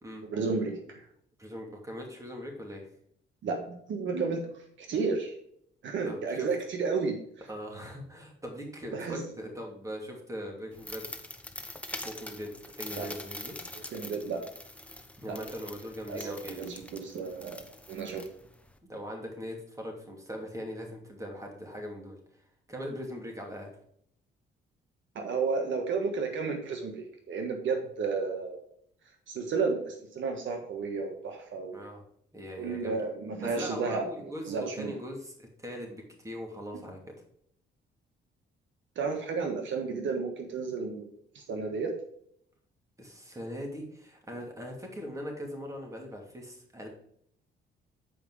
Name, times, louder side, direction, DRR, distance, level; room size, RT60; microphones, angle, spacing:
voice 1, 0.3-0.8 3.4-4.4 4.8-5.3 5.8-7.2 8.9-9.2 13.0-13.1 13.9-14.4 16.1-18.2 25.1-28.6 29.3-31.8 32.6-34.0 34.5-34.9 39.0-41.9, right 4 dB, 70° right, 4 dB, 1.4 m, -32 dB
voice 2, 1.4-2.9 6.0-6.6 7.5-11.1 12.0-13.5 15.2-16.6 18.8-22.2 22.7-23.7 31.7-32.0 32.3-33.0 33.4-37.1 43.0-46.9, equal, 15° right, 1 dB, 2.6 m, -40 dB
sound 1, 10.7-18.8, left 1 dB, 5° left, 0.9 m, -44 dB
7.9 x 5.0 x 4.8 m, 0.68 s
cardioid pair, 90°, 20 cm